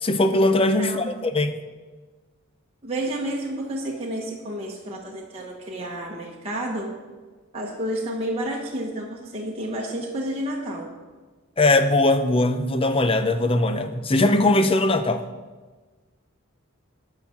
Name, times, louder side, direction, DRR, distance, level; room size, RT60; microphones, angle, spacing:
voice 1, 0.0-1.6 11.6-15.2, left 2 dB, 25° left, 9 dB, 0.7 m, -20 dB
voice 2, 0.8-1.1 2.8-7.0 7.5-10.9, right 1 dB, 30° right, -3 dB, 1.2 m, -30 dB
13.5 x 5.9 x 6.0 m, 1.3 s
head